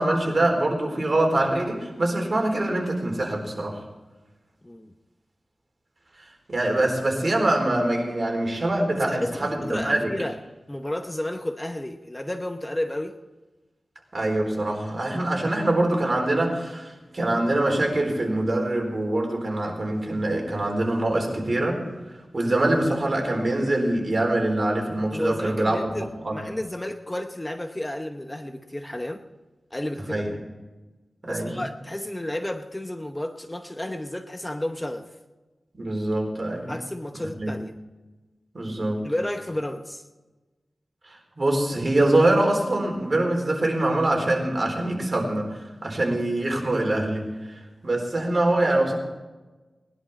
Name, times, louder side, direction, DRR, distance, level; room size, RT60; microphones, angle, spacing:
voice 1, 0.0-3.8 6.5-10.1 14.1-21.8 22.3-26.0 26.2-26.4 30.1-30.3 31.2-31.6 35.7-36.7 37.2-37.5 38.5-39.0 41.1-49.0, right 1 dB, 45° right, 0 dB, 4.1 m, -24 dB
voice 2, 4.6-4.9 9.0-10.4 10.7-13.2 25.1-29.2 29.7-30.4 31.2-35.2 36.7-37.7 39.0-40.0, left 1 dB, 15° left, 7 dB, 0.8 m, -32 dB
19.5 x 11.0 x 4.3 m, 1.2 s
wide cardioid pair, 75°, 0 cm